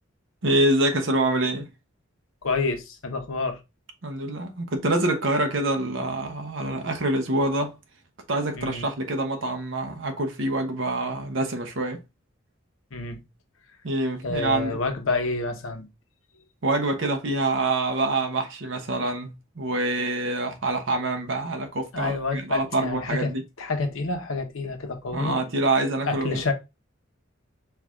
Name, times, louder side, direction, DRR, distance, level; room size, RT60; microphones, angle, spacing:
voice 1, 0.4-1.7 4.0-7.7 8.3-12.0 13.8-14.8 16.6-23.4 25.1-26.4, right 2 dB, 65° right, 0.8 m, -26 dB
voice 2, 2.4-3.6 8.6-8.9 12.9-13.2 14.2-15.9 21.9-25.4 26.1-26.5, left 3 dB, 80° left, 0.9 m, -28 dB
4.6 x 2.4 x 3.5 m
head